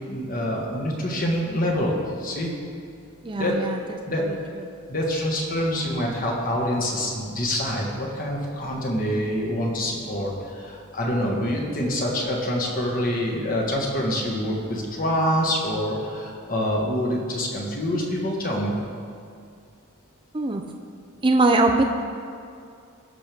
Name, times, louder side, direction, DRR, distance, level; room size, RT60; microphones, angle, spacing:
voice 1, 0.1-2.5 3.4-3.5 4.0-4.2 4.9-18.7, equal, 40° left, -2 dB, 1.6 m, -26 dB
voice 2, 3.2-3.8 20.3-20.6 21.2-21.8, right 2 dB, 25° right, 3 dB, 0.5 m, -20 dB
17.5 x 6.1 x 3.5 m, 2.4 s
head